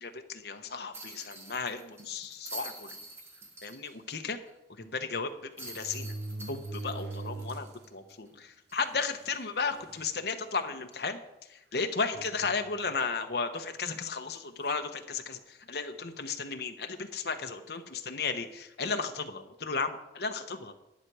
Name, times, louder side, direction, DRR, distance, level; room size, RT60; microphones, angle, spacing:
voice 1, 0.0-3.0 3.6-4.4 4.8-6.1 6.5-11.2 11.5-20.7, left 4 dB, 60° left, 6 dB, 1.0 m, -34 dB
sound 1, 0.9-4.1 4.5-4.6 5.6-8.3 8.7-8.8 10.9-11.1, right 2 dB, 15° right, 1.5 m, -46 dB
sound 2, 2.0-2.3 3.0-3.1 3.4-3.5 4.8-4.9 5.6-7.9 8.3-8.4 9.2-9.3 9.7-10.1 10.7-10.8 12.1-12.9 13.9-14.2, right 2 dB, 65° right, 0.7 m, -41 dB
10.5 x 9.3 x 4.8 m, 0.93 s
head